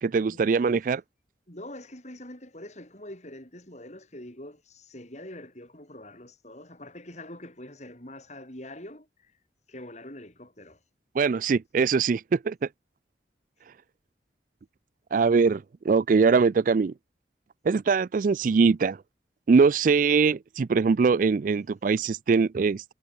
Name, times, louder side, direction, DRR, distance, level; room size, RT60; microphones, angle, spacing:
voice 1, 0.0-1.0 11.2-12.7 15.1-16.9 17.7-19.0 19.5-22.8, right 5 dB, 45° right, 0.4 m, -22 dB
voice 2, 1.5-9.3 9.7-10.8, left 1 dB, 40° left, 7.1 m, -44 dB
head